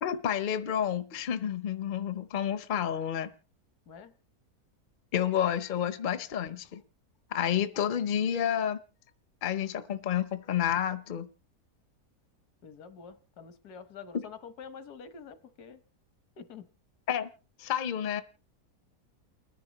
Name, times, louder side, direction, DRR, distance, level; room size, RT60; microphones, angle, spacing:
voice 1, 0.0-3.3 5.1-6.8 7.3-8.8 9.4-11.3 17.1-17.3 17.6-18.2, left 9 dB, 45° left, 12 dB, 0.7 m, -30 dB
voice 2, 12.6-15.8 16.4-16.6, left 6 dB, 80° left, 11 dB, 1.6 m, -47 dB
29.5 x 10.5 x 3.0 m, 0.33 s
omnidirectional pair, 1.6 m